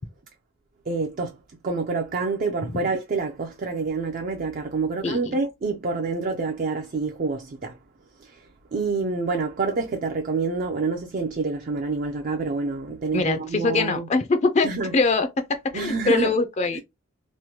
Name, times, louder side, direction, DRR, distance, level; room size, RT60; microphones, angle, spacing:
voice 1, 0.9-1.4 1.6-7.8 8.2-8.4 8.7-14.1 14.6-14.9 15.7-16.3, right 4 dB, 40° right, 0.4 m, -27 dB
voice 2, 5.0-5.4 13.1-14.7 14.9-15.3 15.7-16.8, left 3 dB, 30° left, 0.4 m, -23 dB
3.1 x 2.1 x 2.7 m
head